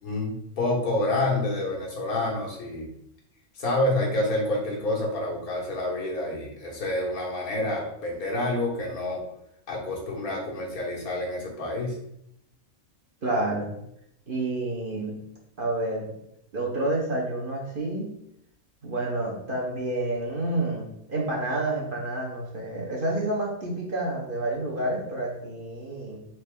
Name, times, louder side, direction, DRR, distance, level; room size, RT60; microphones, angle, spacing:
voice 1, 0.0-2.9 3.5-9.2 9.7-12.0, left 1 dB, 85° left, -2 dB, 1.7 m, -28 dB
voice 2, 13.2-13.8 14.3-15.2 15.6-16.1 16.5-18.2 18.8-26.3, right 2 dB, 45° right, -2 dB, 0.9 m, -29 dB
4.3 x 3.2 x 3.6 m, 0.76 s
omnidirectional pair, 1.5 m